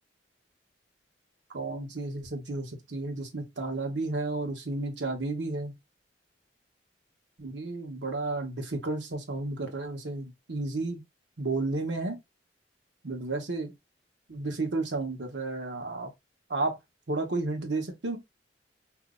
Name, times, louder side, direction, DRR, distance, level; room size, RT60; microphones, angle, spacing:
voice 1, 1.5-5.8 7.4-11.0 11.4-12.2 13.0-13.7 14.3-16.1 16.5-16.8 17.1-18.2, right 2 dB, 80° right, 1.0 m, -32 dB
2.7 x 2.0 x 3.5 m
head